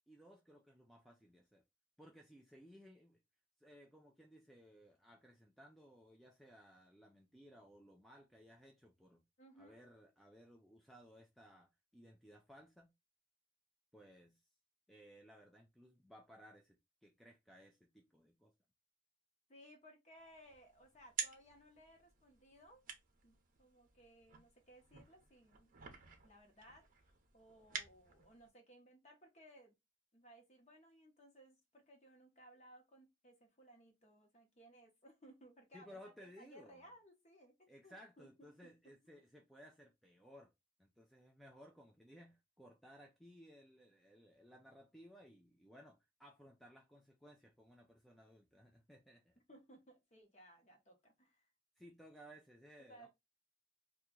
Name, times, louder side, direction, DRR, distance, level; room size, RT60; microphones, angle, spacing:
voice 1, 0.1-1.6 2.0-3.2 3.6-9.2 9.6-12.9 13.9-14.4 14.9-18.5 35.7-36.8 37.7-40.5 40.8-49.4 51.8-53.1, equal, ahead, 0.4 m, -60 dB
voice 2, 9.4-9.8 19.5-22.8 23.2-25.7 26.2-29.8 30.1-37.5 37.8-38.7 49.5-51.5 52.9-53.1, equal, 35° left, 1.0 m, -62 dB
sound 1, 20.2-28.5, right 6 dB, 40° right, 0.7 m, -50 dB
2.9 x 2.3 x 3.6 m
head